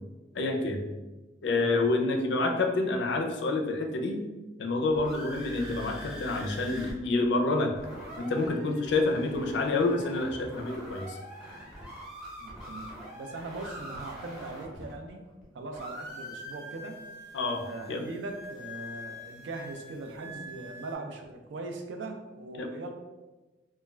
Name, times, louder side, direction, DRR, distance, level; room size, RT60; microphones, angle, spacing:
voice 1, 0.3-0.9 1.4-4.2 4.6-7.7 8.2-11.2 17.3-18.1 22.6-22.7, left 2 dB, 70° left, 3 dB, 0.4 m, -28 dB
sound 1, 4.9-6.9 7.2-7.3 7.6-15.4 15.7-21.0, equal, 5° right, 0.6 m, -44 dB
voice 2, 12.4-15.2 15.5-17.0 17.6-22.9, right 3 dB, 80° right, 5 dB, 0.4 m, -40 dB
2.2 x 2.2 x 3.1 m, 1.1 s
head